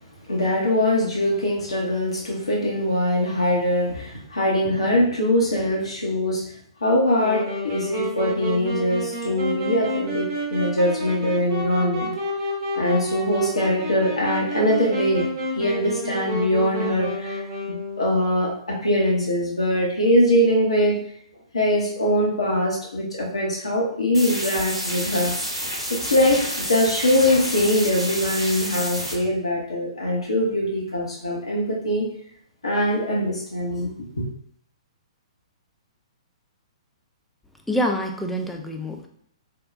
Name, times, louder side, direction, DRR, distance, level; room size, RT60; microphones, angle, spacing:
voice 1, 0.3-6.5 6.8-12.1 12.8-15.3 15.5-21.0 21.5-25.3 25.9-32.1 32.6-34.2, left 1 dB, 80° left, -3 dB, 0.8 m, -22 dB
Wind instrument woodwind instrument, 7.2-18.1, equal, 45° right, 0.8 m, -30 dB
sound 1, 24.1-29.1, equal, 90° right, 0.9 m, -29 dB
voice 2, 37.7-39.1, equal, ahead, 2 dB, 0.3 m, -26 dB
3.4 x 2.2 x 2.4 m, 0.64 s
figure-of-eight pair, 115°, 3 cm